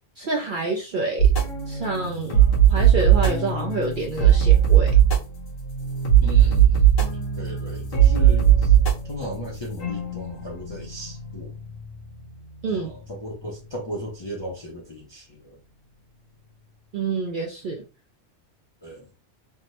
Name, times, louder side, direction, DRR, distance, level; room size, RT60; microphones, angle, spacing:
voice 1, 0.2-1.3 1.7-2.4 2.7-4.9 12.6-12.9 16.9-17.8, right 3 dB, 65° right, 0.5 m, -27 dB
sound 1, 1.2-13.8, right 9 dB, 90° left, 1.3 m, -20 dB
voice 2, 6.2-8.8 9.0-11.5 12.7-15.6 18.8-19.1, equal, 35° left, 0.4 m, -36 dB
3.3 x 2.1 x 2.8 m
omnidirectional pair, 1.3 m